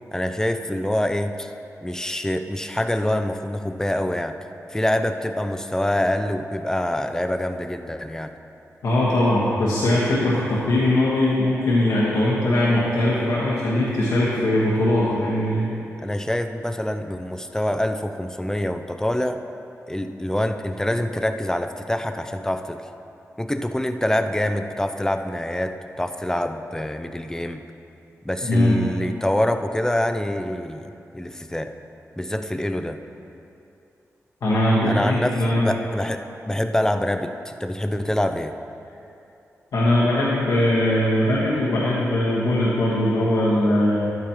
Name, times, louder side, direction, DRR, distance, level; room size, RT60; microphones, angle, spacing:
voice 1, 0.1-1.5 1.8-4.4 4.7-8.3 16.0-19.5 19.9-22.9 23.4-27.6 28.2-31.7 32.2-33.0 34.9-38.5, left 1 dB, 10° left, 8 dB, 0.6 m, -25 dB
voice 2, 8.8-15.7 28.5-28.7 34.4-35.6 39.7-44.1, left 1 dB, 90° left, -9 dB, 1.4 m, -20 dB
11.0 x 9.3 x 3.1 m, 2.7 s
cardioid pair, 45°, 6 cm